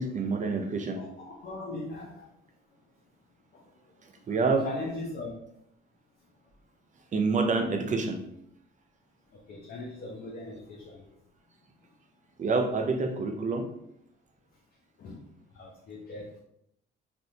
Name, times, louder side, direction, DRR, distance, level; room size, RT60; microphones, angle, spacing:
voice 1, 0.0-1.0 4.3-4.7 7.1-8.2 12.4-13.7, right 4 dB, 40° right, 3 dB, 0.5 m, -27 dB
voice 2, 0.9-2.3 3.5-5.3 9.3-11.2 15.0-16.4, left 2 dB, 50° left, -2 dB, 0.7 m, -40 dB
3.4 x 2.5 x 2.7 m, 0.75 s
cardioid pair, 90°, 20 cm